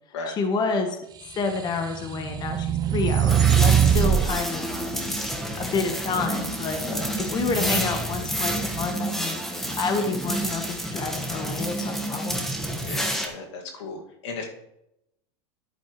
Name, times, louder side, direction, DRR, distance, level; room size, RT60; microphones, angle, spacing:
voice 1, 0.3-1.0 1.3-4.7 5.6-6.8 7.2-9.4 9.8-12.4, left 4 dB, 30° left, 5 dB, 1.2 m, -29 dB
sound 1, 1.4-4.3, right 9 dB, 25° right, 0.7 m, -21 dB
sound 2, 2.4-8.8, right 2 dB, 45° right, 2.6 m, -40 dB
sound 3, 3.3-13.3, equal, ahead, 1.4 m, -29 dB
voice 2, 12.8-14.4, left 3 dB, 80° left, 1 dB, 2.1 m, -36 dB
10.5 x 8.8 x 3.2 m, 0.83 s
supercardioid pair, 120°, 15 cm